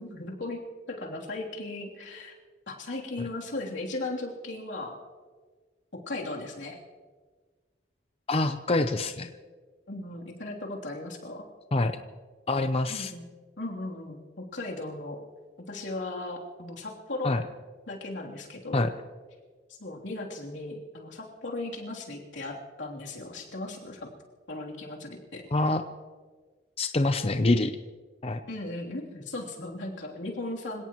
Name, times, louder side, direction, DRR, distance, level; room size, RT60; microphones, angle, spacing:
voice 1, 0.0-2.3 2.7-5.0 6.1-6.8 9.9-11.4 12.9-13.2 13.6-15.2 15.7-17.4 17.9-18.8 19.7-24.1 24.5-25.4 28.5-30.8, left 2 dB, 90° left, -2 dB, 3.1 m, -37 dB
voice 2, 8.3-9.3 11.7-12.0 12.5-13.1 17.2-17.4 18.7-18.9 25.5-25.8 26.8-27.7 28.2-28.4, left 2 dB, 35° left, 8 dB, 0.6 m, -25 dB
26.0 x 17.5 x 3.0 m, 1.4 s
head